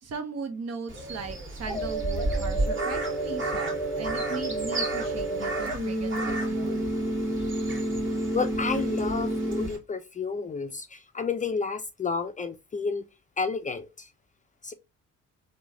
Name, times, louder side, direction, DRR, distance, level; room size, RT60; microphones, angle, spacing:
voice 1, 0.0-6.9, right 5 dB, 55° right, 0.9 m, -38 dB
Crow, 0.9-9.8, right 1 dB, 40° right, 1.5 m, -34 dB
sound 1, 1.7-9.7, right 1 dB, 5° right, 1.4 m, -30 dB
voice 2, 8.3-13.0 13.4-14.1 14.6-14.7, left 4 dB, 25° left, 0.4 m, -31 dB
3.0 x 2.2 x 3.6 m
cardioid pair, 90°, 30 cm